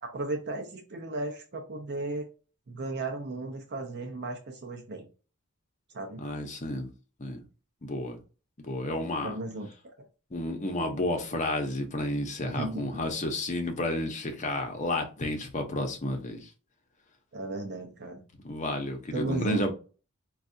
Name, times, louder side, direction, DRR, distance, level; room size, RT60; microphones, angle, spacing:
voice 1, 0.0-2.3 2.7-5.1 5.9-6.2 9.2-10.1 12.4-13.0 17.3-18.2 19.1-19.6, right 2 dB, 55° right, 0.6 m, -35 dB
voice 2, 6.2-6.9 7.2-7.4 7.8-8.2 8.6-9.4 10.3-16.5 18.4-19.7, left 1 dB, 35° left, 0.8 m, -31 dB
4.5 x 2.4 x 2.6 m
head